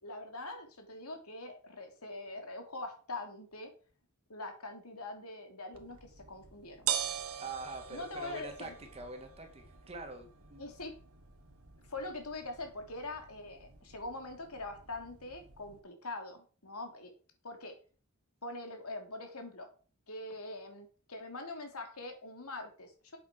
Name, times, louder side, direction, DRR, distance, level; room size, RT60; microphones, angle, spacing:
voice 1, 0.0-3.7 4.3-6.9 7.9-8.7 10.6-10.9 11.9-17.1 17.4-17.7 18.4-19.7 20.1-23.2, left 2 dB, 80° left, 5 dB, 3.1 m, -43 dB
sound 1, 5.7-15.8, right 9 dB, 75° right, 1.7 m, -43 dB
voice 2, 7.4-10.6, right 3 dB, 30° right, 4 dB, 2.4 m, -45 dB
8.8 x 8.1 x 6.1 m, 0.38 s
head